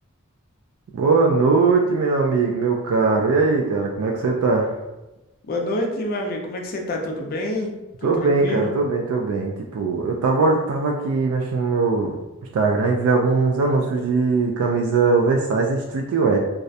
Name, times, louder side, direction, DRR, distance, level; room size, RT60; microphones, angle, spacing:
voice 1, 0.9-4.8 8.0-12.2 12.5-16.4, right 4 dB, 90° right, 1 dB, 0.3 m, -20 dB
voice 2, 5.5-7.7 8.0-8.7, left 1 dB, 45° left, 1 dB, 0.4 m, -27 dB
2.3 x 2.0 x 2.6 m, 1.0 s
head